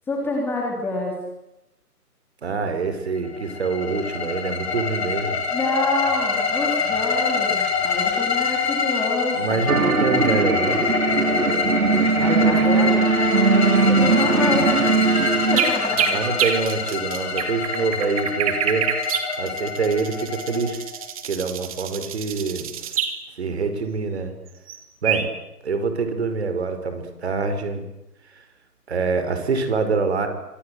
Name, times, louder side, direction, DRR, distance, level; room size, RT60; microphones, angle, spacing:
voice 1, 0.1-1.2 5.5-9.7 12.2-13.1 13.5-14.8 15.3-16.1, left 2 dB, 5° left, -1 dB, 3.6 m, -26 dB
voice 2, 2.4-5.4 9.3-10.8 16.1-18.9 19.4-20.8 21.2-22.7 23.4-24.3 25.0-25.3 25.6-27.8 28.9-30.3, right 4 dB, 45° right, 8 dB, 5.4 m, -25 dB
sound 1, 3.2-21.1, left 5 dB, 45° left, 5.5 m, -25 dB
sound 2, 9.7-15.6, right 5 dB, 65° right, 2.4 m, -20 dB
sound 3, 15.1-23.2 24.7-24.8 25.0-25.2, right 9 dB, 20° right, 2.9 m, -26 dB
28.0 x 26.0 x 8.1 m, 0.88 s
figure-of-eight pair, 155°, 47 cm